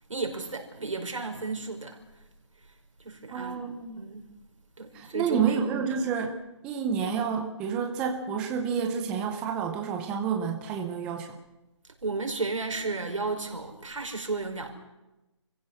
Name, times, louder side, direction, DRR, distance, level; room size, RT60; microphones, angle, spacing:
voice 1, 0.1-2.0 3.0-4.2 4.8-5.9 12.0-14.7, right 3 dB, 85° right, 4 dB, 5.3 m, -33 dB
voice 2, 3.3-4.0 4.9-6.3 6.6-11.3, right 6 dB, 5° right, 3 dB, 0.7 m, -29 dB
27.5 x 16.0 x 6.4 m, 1.0 s
hypercardioid pair, 170°, 16 cm